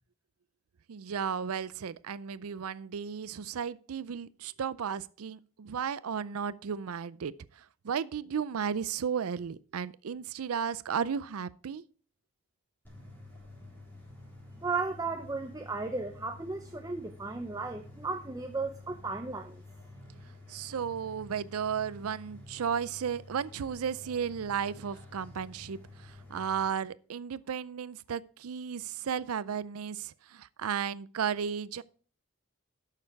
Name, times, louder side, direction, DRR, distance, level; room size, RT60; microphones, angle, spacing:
voice 1, 0.9-11.8 20.5-31.8, right 7 dB, 90° right, 0.5 m, -34 dB
sound 1, 12.8-26.7, left 2 dB, 10° left, 3.6 m, -50 dB
voice 2, 14.6-19.6, right 3 dB, 15° right, 0.6 m, -35 dB
11.5 x 6.6 x 4.6 m
head